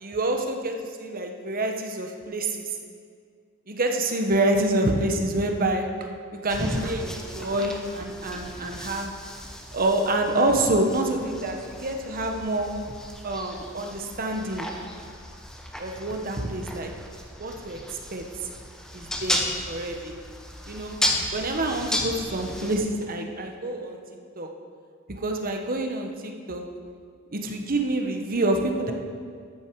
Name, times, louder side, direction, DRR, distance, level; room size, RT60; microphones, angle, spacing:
voice 1, 0.0-2.8 3.7-5.9 6.4-9.1 9.7-12.7 13.2-14.7 15.8-16.9 17.4-18.5 18.9-20.2 20.7-21.0 21.3-24.0 24.4-24.5 25.1-26.6 27.3-28.9, right 2 dB, 45° right, 3 dB, 1.2 m, -27 dB
sound 1, 6.5-22.8, left 1 dB, 5° left, 1.1 m, -34 dB
13.5 x 9.2 x 4.7 m, 2.1 s
head